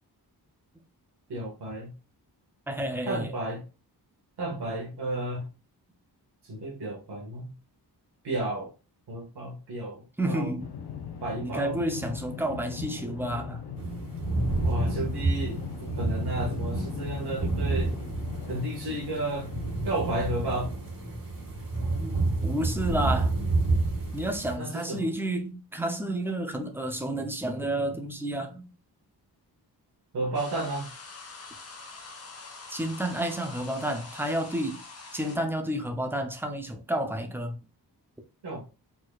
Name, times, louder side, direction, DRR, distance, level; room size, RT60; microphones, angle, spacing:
voice 1, 1.3-1.9 3.1-3.7 4.4-5.5 6.4-7.5 8.2-8.7 9.1-10.6 11.2-11.8 14.6-17.9 18.5-19.5 19.8-20.7 24.6-25.1 30.1-30.9 38.4-38.6, right 1 dB, 75° right, 1.7 m, -32 dB
voice 2, 2.7-3.3 10.2-10.7 11.4-13.6 22.0-23.3 24.1-28.7 32.7-34.8 35.1-37.6, right 1 dB, 5° right, 0.7 m, -30 dB
sound 1, 10.6-20.7, left 7 dB, 75° left, 0.8 m, -39 dB
sound 2, 13.8-24.6, right 2 dB, 55° right, 2.6 m, -29 dB
sound 3, 30.3-35.4, left 3 dB, 40° left, 0.9 m, -45 dB
4.4 x 4.3 x 2.4 m
wide cardioid pair, 170°, 40 cm